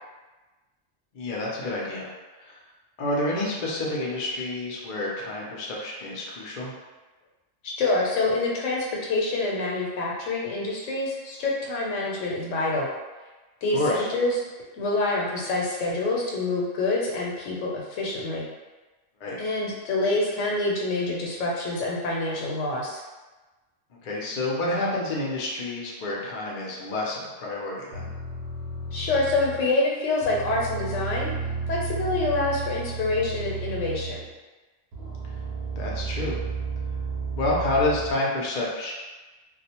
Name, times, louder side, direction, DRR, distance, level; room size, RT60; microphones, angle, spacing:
voice 1, 1.1-2.1 2.4-2.6 3.0-6.7 13.7-14.1 19.2-19.4 24.0-28.1 35.8-36.4 37.3-38.9, left 2 dB, 50° left, -4 dB, 0.6 m, -28 dB
voice 2, 7.6-12.9 13.6-14.3 14.8-18.5 19.4-23.0 28.9-31.3 31.7-34.2, left 2 dB, 85° left, -3 dB, 1.0 m, -26 dB
sound 1, 27.9-29.7 30.2-34.3 34.9-38.1, right 4 dB, 65° right, 0.8 m, -32 dB
2.3 x 2.1 x 2.8 m, 1.2 s
omnidirectional pair, 1.2 m